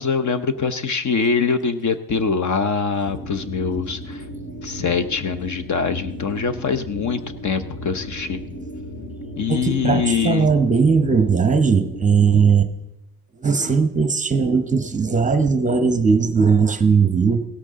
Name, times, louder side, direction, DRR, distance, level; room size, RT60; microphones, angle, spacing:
voice 1, 0.0-4.2 4.6-8.4 9.4-10.5, left 5 dB, 50° left, 11 dB, 0.9 m, -23 dB
sound 1, 3.0-12.5, equal, 65° left, 3.0 m, -35 dB
voice 2, 9.5-12.7 13.4-17.4, right 5 dB, 20° right, 9 dB, 0.9 m, -18 dB
17.0 x 13.5 x 3.7 m, 0.91 s
cardioid pair, 145°, 38 cm